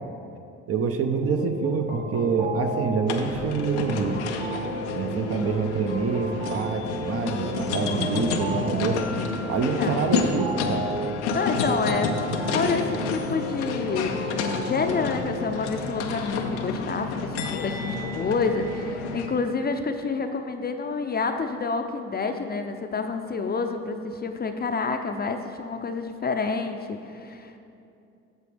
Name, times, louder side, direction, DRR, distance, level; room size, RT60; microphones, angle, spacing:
voice 1, 0.7-4.2 4.9-9.0 9.5-10.9, right 5 dB, 45° right, 6 dB, 0.7 m, -26 dB
sound 1, 1.1-15.6, right 1 dB, 25° right, 1.0 m, -33 dB
sound 2, 3.1-19.3, left 4 dB, 90° left, 0.6 m, -30 dB
voice 2, 9.7-10.1 11.3-12.1 12.5-27.5, left 4 dB, 30° left, 6 dB, 0.5 m, -28 dB
8.1 x 6.8 x 3.4 m, 2.6 s
hypercardioid pair, 60°, 34 cm